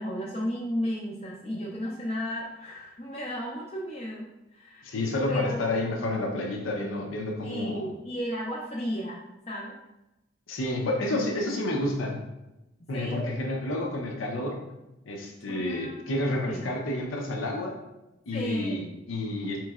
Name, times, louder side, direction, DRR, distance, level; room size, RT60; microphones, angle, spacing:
voice 1, 0.0-4.9 5.3-5.6 7.4-9.8 12.9-13.3 15.5-16.7 18.3-18.9, equal, 30° left, -4 dB, 0.4 m, -34 dB
voice 2, 4.8-7.9 10.5-12.2 12.9-14.6 15.1-17.8 18.3-19.6, left 1 dB, 75° left, 1 dB, 0.6 m, -30 dB
4.4 x 3.0 x 2.3 m, 0.95 s
head